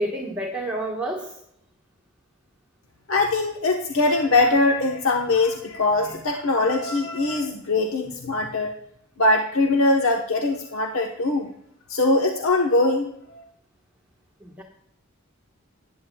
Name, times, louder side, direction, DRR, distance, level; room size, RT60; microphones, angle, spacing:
voice 1, 0.0-1.4 14.4-14.6, right 1 dB, 10° right, -2 dB, 1.4 m, -29 dB
voice 2, 3.1-8.7 9.2-11.5 11.9-13.4, left 2 dB, 80° left, 2 dB, 1.1 m, -22 dB
19.0 x 9.3 x 2.3 m, 0.72 s
head